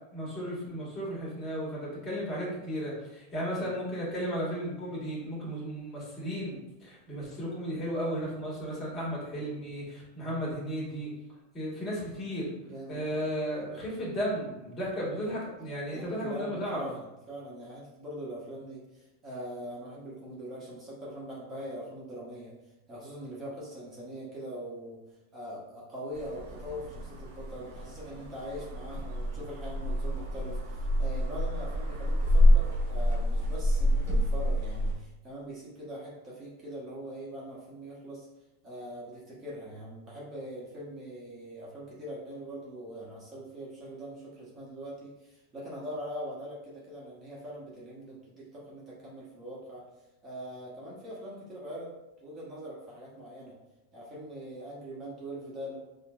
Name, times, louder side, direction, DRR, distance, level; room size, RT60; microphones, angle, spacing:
voice 1, 0.1-11.1 11.5-12.5 12.9-16.9, equal, 25° left, -5 dB, 1.4 m, -34 dB
voice 2, 12.6-13.2 15.9-22.5 22.9-25.0 25.3-38.3 38.6-49.8 50.2-51.9 52.2-53.6 53.9-55.8, equal, 25° right, -6 dB, 1.0 m, -42 dB
sound 1, 26.1-35.0, equal, 80° right, 1.0 m, -27 dB
4.2 x 2.2 x 2.3 m, 1.0 s
supercardioid pair, 125°, 0 cm